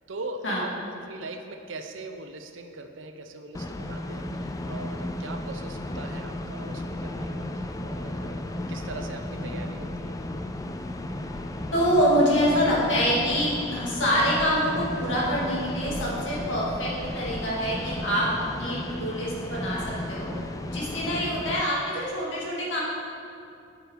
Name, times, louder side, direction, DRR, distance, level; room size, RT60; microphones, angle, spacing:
voice 1, 0.1-8.4 8.7-10.2 21.1-21.4, right 2 dB, 75° right, 6 dB, 0.6 m, -40 dB
sound 1, 3.5-21.6, left 1 dB, 20° left, 0.3 m, -34 dB
voice 2, 11.7-20.3 20.7-22.8, equal, 70° left, -5 dB, 2.2 m, -25 dB
8.2 x 6.8 x 4.5 m, 2.5 s
head